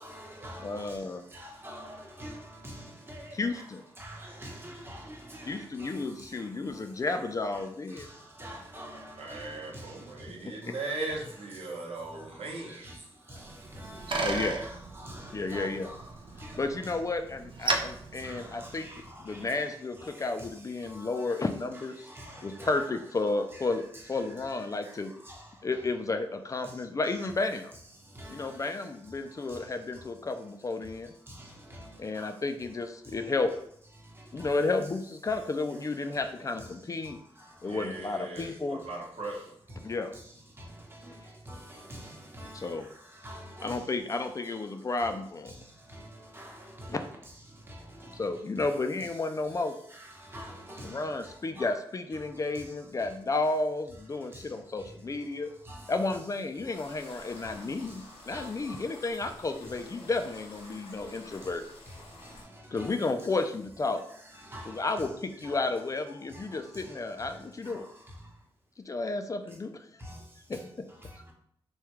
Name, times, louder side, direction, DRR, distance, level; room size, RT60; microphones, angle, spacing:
voice 1, 0.0-0.7 1.3-2.4 2.6-2.7 3.1-3.3 4.0-5.9 8.4-9.5 9.7-9.8 12.8-12.9 13.8-14.7 15.1-15.9 16.4-16.6 18.2-18.4 18.8-18.9 20.4-20.5 22.2-22.9 23.5-23.6 25.3-25.4 28.2-28.5 41.5-41.6 41.9-42.1 42.4-42.5 43.2-43.8 46.3-46.5 50.3-51.0 51.6-51.7 55.7-55.8 58.3-58.5 62.8-62.9 64.5-64.7 65.4-65.5 70.1-70.2, equal, 20° right, 0.9 m, -44 dB
voice 2, 0.6-1.3 3.3-3.8 5.4-8.1 10.5-10.6 14.2-14.6 15.3-15.9 16.6-18.9 19.2-21.9 22.4-25.1 25.6-27.7 28.3-31.1 32.0-33.5 34.3-37.2 37.6-38.8 39.8-40.1 42.5-42.9 43.6-45.5 46.9-47.0 48.1-49.7 50.8-55.5 55.9-61.6 62.7-64.0 64.7-67.9 68.9-69.8 70.5-70.6 71.1-71.2, left 3 dB, 35° left, 0.4 m, -32 dB
voice 3, 9.2-12.9 37.6-39.5, right 2 dB, 75° right, 0.9 m, -38 dB
Bicycle, 13.4-19.2, right 3 dB, 55° right, 0.5 m, -36 dB
sound 1, 56.7-62.4, left 2 dB, 85° left, 0.7 m, -50 dB
3.5 x 2.3 x 3.0 m
cardioid pair, 65°, 10 cm